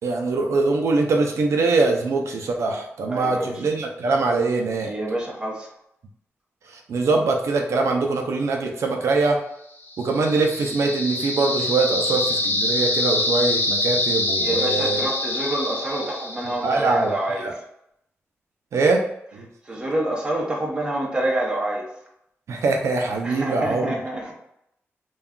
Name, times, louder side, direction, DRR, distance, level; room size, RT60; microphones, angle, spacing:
voice 1, 0.0-4.9 6.7-9.4 10.0-15.0 16.6-17.1 17.4-17.5 18.7-19.0 19.3-19.5 22.5-24.0, right 3 dB, 85° right, 2 dB, 0.4 m, -22 dB
voice 2, 3.1-3.7 4.8-5.7 14.3-17.5 19.6-21.9 23.2-24.3, right 1 dB, 20° right, -2 dB, 0.7 m, -27 dB
sound 1, 9.9-16.8, left 2 dB, 45° left, 0.6 m, -25 dB
2.3 x 2.2 x 3.5 m, 0.77 s
wide cardioid pair, 145°, 5 cm